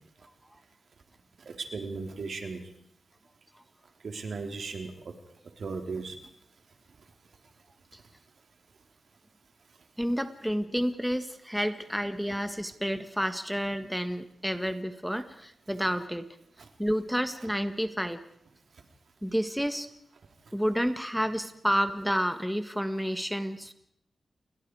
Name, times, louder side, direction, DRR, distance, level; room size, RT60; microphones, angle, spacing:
voice 1, 1.5-2.6 4.0-4.9 5.6-6.2, right 4 dB, 70° right, 4 dB, 3.8 m, -36 dB
voice 2, 10.0-16.3 16.8-18.2 19.2-19.9 20.5-23.7, equal, ahead, 9 dB, 1.7 m, -30 dB
29.5 x 23.0 x 4.9 m, 0.70 s
cardioid pair, 75°, 0 cm